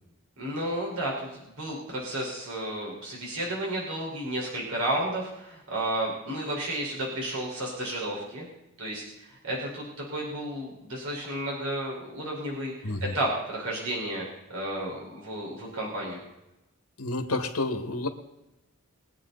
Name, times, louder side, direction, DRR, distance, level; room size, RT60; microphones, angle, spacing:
voice 1, 0.4-8.5 8.8-9.0 9.4-16.2, right 1 dB, 75° right, -3 dB, 4.6 m, -32 dB
voice 2, 12.8-13.1 17.0-18.1, left 2 dB, 85° left, 5 dB, 1.9 m, -29 dB
22.5 x 9.1 x 4.1 m, 0.96 s
head